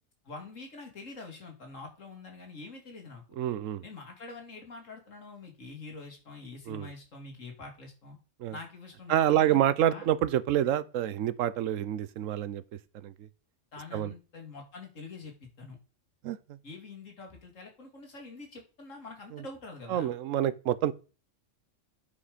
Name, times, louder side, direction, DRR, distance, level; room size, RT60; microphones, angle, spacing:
voice 1, 0.2-3.4 3.8-8.2 8.5-9.6 9.9-10.1 13.7-15.8 16.6-20.1, left 3 dB, 85° left, 2.6 m, -45 dB
voice 2, 3.4-3.8 6.7-6.9 8.4-8.5 9.1-12.6 13.0-13.1 13.9-14.1 16.2-16.4 19.3-19.4 19.9-20.9, right 11 dB, 90° right, 1.0 m, -27 dB
10.0 x 5.3 x 5.0 m
omnidirectional pair, 1.3 m